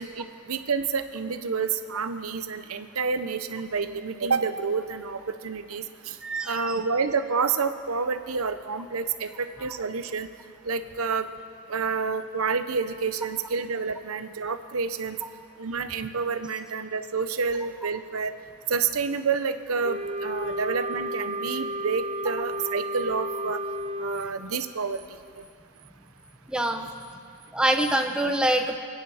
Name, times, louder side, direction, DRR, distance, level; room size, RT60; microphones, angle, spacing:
voice 1, 0.0-6.2 6.5-10.3 10.6-11.3 11.7-15.2 15.6-18.3 18.7-23.6 24.0-25.0, right 5 dB, 80° right, 10 dB, 0.8 m, -29 dB
voice 2, 6.2-6.7 26.5-26.9 27.5-28.8, right 1 dB, 5° right, 4 dB, 0.9 m, -25 dB
Wind instrument woodwind instrument, 19.8-24.3, right 1 dB, 25° right, 0.5 m, -32 dB
28.5 x 9.7 x 4.9 m, 2.4 s
head